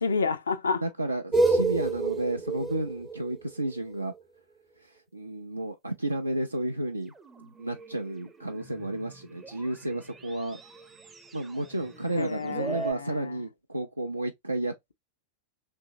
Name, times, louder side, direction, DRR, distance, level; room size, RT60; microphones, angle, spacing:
voice 1, 0.0-0.8 12.1-13.4, left 4 dB, 70° left, 0.4 m, -29 dB
voice 2, 0.8-4.1 4.8-10.6 11.3-14.9, right 1 dB, 85° right, 0.3 m, -32 dB
sound 1, 1.3-4.2 7.2-12.9, right 3 dB, 15° right, 0.5 m, -32 dB
2.9 x 2.6 x 2.5 m
figure-of-eight pair, 90°, 0 cm